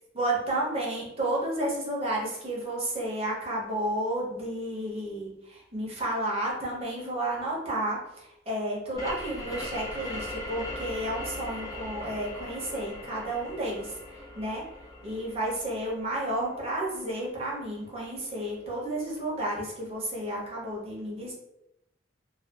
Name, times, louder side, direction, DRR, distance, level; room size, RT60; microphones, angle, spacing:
voice 1, 0.1-13.9 14.4-14.6 15.0-21.3, right 1 dB, 30° right, -4 dB, 0.6 m, -31 dB
sound 1, 8.9-18.3, left 1 dB, 20° left, 0.3 m, -40 dB
2.5 x 2.2 x 2.3 m, 0.85 s
head